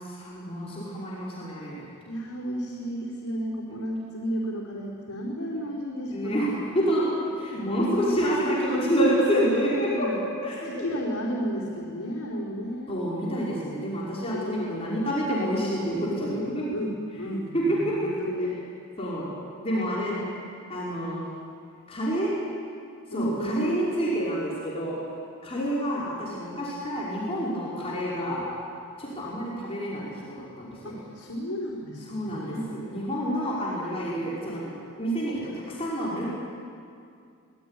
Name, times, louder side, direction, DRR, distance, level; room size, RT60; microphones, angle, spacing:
voice 1, 0.0-1.9 6.1-10.1 10.4-10.9 12.9-16.6 17.5-18.1 18.4-18.5 19.0-19.3 19.6-20.2 20.7-21.3 21.9-22.3 23.1-25.0 25.4-28.5 29.0-31.0 32.1-36.3, equal, 25° left, -6 dB, 5.2 m, -28 dB
voice 2, 2.0-6.4 7.7-8.1 8.4-8.5 9.5-10.2 10.6-12.9 14.3-14.8 16.7-18.5 19.8-20.4 23.1-23.8 24.1-24.2 30.8-32.7, equal, 80° left, -4 dB, 4.5 m, -33 dB
25.5 x 19.0 x 10.0 m, 2.4 s
head